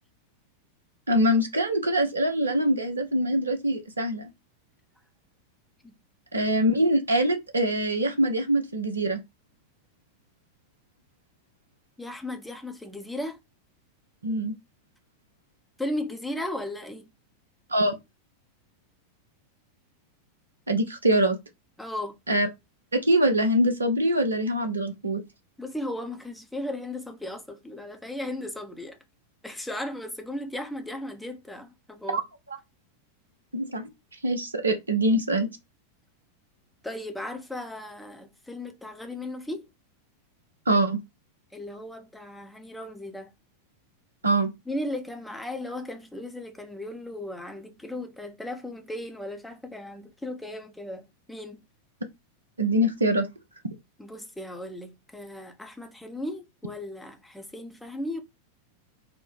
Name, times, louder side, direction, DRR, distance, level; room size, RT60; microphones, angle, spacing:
voice 1, 1.1-4.3 6.3-9.2 14.2-14.5 17.7-18.0 20.7-21.4 22.3-22.5 22.9-25.2 32.1-32.2 33.5-33.9 34.2-35.5 40.7-41.0 44.2-44.5 52.6-53.3, right 1 dB, 75° right, 0.7 m, -24 dB
voice 2, 12.0-13.4 15.8-17.1 21.8-22.2 25.6-29.0 29.4-32.2 36.8-39.6 41.5-43.3 44.7-51.6 54.0-58.2, left 1 dB, 5° left, 0.7 m, -36 dB
4.2 x 2.1 x 3.1 m
figure-of-eight pair, 90°, 0 cm